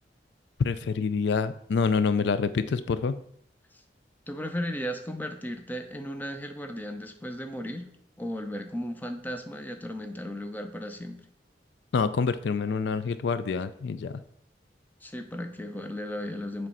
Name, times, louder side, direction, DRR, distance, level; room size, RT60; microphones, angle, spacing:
voice 1, 0.6-3.2 11.9-14.2, left 5 dB, 75° left, 13 dB, 0.4 m, -27 dB
voice 2, 4.3-7.9 8.2-11.2 15.0-16.7, equal, 10° left, 5 dB, 0.6 m, -35 dB
7.5 x 3.3 x 5.4 m, 0.66 s
head